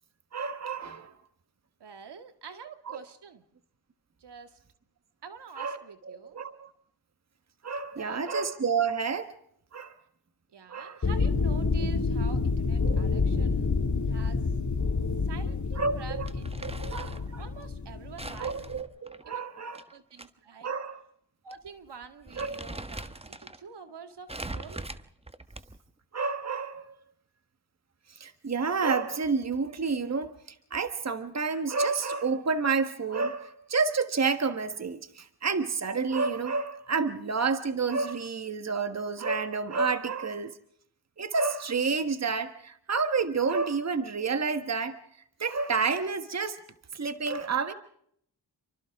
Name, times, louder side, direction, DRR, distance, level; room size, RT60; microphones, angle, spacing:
voice 1, 0.3-1.1 2.9-3.0 5.6-5.8 6.1-6.7 7.6-9.3 9.7-9.9 10.7-11.0 12.8-13.0 15.7-16.3 16.6-17.4 18.4-19.8 20.6-21.0 22.4-22.6 26.1-26.9 28.2-30.3 30.7-40.6 41.2-45.0 45.4-46.6 46.9-47.7, right 4 dB, 40° right, 9 dB, 1.5 m, -29 dB
voice 2, 1.8-3.4 4.2-4.6 5.2-6.4 7.9-8.2 10.5-13.7 14.1-14.4 15.2-16.9 17.4-18.6 19.3-19.4 19.9-20.7 21.4-24.9, right 5 dB, 75° right, 7 dB, 2.2 m, -47 dB
sound 1, 11.0-18.8, left 4 dB, 45° left, 2.0 m, -28 dB
Crumpling crinkling, 16.3-17.3 18.2-20.3 20.6-20.7 21.5-21.7 22.0-23.6 24.3-25.9, right 2 dB, 15° right, 1.3 m, -41 dB
29.0 x 24.5 x 3.7 m, 0.68 s
cardioid pair, 70°, 41 cm